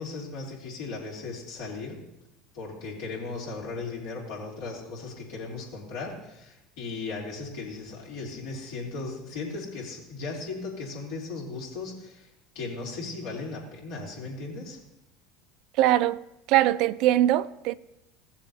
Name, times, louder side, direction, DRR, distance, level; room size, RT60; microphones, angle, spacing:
voice 1, 0.0-2.0 2.5-12.3 12.5-14.8, left 3 dB, 70° left, 3.3 m, -37 dB
voice 2, 15.8-16.2 16.5-17.7, right 13 dB, 60° right, 0.4 m, -22 dB
17.0 x 7.2 x 2.8 m
hypercardioid pair, 80°, 0 cm